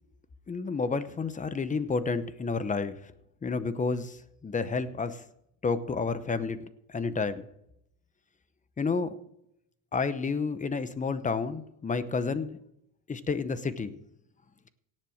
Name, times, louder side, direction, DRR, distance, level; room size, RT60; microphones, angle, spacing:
voice 1, 0.5-3.1 3.4-5.2 5.6-7.5 8.8-9.1 9.9-12.6 13.1-13.9, left 4 dB, 20° left, 13 dB, 0.9 m, -30 dB
17.5 x 7.6 x 6.4 m, 0.79 s
cardioid pair, 135°, 39 cm